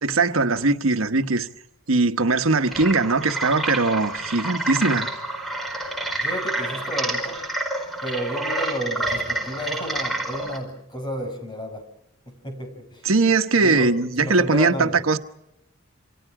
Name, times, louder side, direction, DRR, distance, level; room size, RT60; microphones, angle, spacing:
voice 1, 0.0-1.5 1.9-5.1 13.0-15.2, right 3 dB, 85° right, 1.2 m, -20 dB
sound 1, 2.6-10.6, right 2 dB, ahead, 4.9 m, -28 dB
voice 2, 6.1-7.5 8.0-11.9 12.3-13.1 13.6-15.0, equal, 25° left, 6.0 m, -32 dB
28.5 x 26.5 x 4.9 m
head